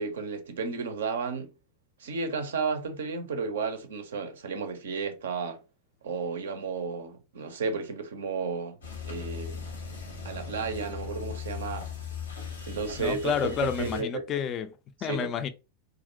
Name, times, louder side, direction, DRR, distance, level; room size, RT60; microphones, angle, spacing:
voice 1, 0.0-1.5 2.0-5.6 6.0-8.8 9.0-9.7 10.2-11.9 12.7-14.3 15.1-15.3, right 5 dB, 60° right, 0.4 m, -33 dB
sound 1, 8.8-14.0, left 6 dB, 70° left, 0.7 m, -38 dB
voice 2, 13.0-15.5, left 8 dB, 30° left, 0.3 m, -30 dB
2.5 x 2.1 x 2.5 m
figure-of-eight pair, 90°, 0 cm